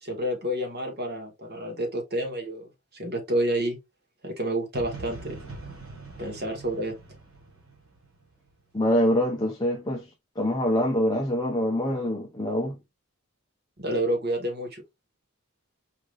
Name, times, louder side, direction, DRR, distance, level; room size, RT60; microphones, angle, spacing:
voice 1, 0.0-3.8 4.2-5.4 6.2-6.9 13.8-14.8, right 1 dB, 45° right, 1.5 m, -29 dB
sound 1, 4.7-8.6, right 3 dB, 70° right, 2.9 m, -43 dB
voice 2, 8.7-10.1 10.4-12.8, equal, 20° left, 0.6 m, -25 dB
4.8 x 3.4 x 2.4 m
head